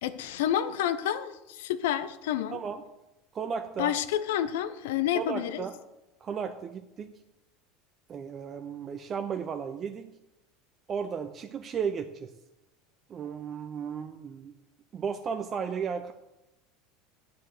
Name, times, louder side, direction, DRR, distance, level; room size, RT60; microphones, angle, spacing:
voice 1, 0.0-2.6 3.8-5.6, left 11 dB, 70° left, 13 dB, 0.6 m, -29 dB
voice 2, 2.5-2.8 3.3-3.9 5.1-5.7 6.2-7.1 8.1-10.1 10.9-12.3 13.1-14.5 14.9-16.1, right 6 dB, 35° right, 7 dB, 0.6 m, -34 dB
9.4 x 4.7 x 7.6 m, 0.95 s
hypercardioid pair, 75°, 0 cm